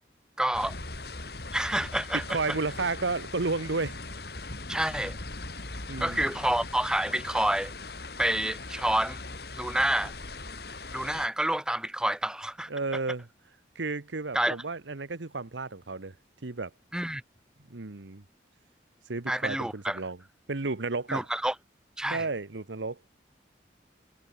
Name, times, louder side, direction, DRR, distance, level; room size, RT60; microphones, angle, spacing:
voice 1, 0.4-0.7 1.5-2.6 4.7-5.2 6.0-7.7 8.2-9.2 9.5-10.1 10.9-12.7 14.3-14.6 16.9-17.2 19.3-20.0 21.1-21.5 22.0-22.3, right 1 dB, 5° right, 0.5 m, -28 dB
sound 1, 0.5-11.3, left 3 dB, 60° left, 3.4 m, -40 dB
voice 2, 2.3-4.0 5.9-6.3 12.7-13.3 13.7-16.1 16.4-16.7 17.7-18.2 19.1-20.2 20.5-21.3 22.1-23.0, right 3 dB, 90° right, 1.2 m, -32 dB
head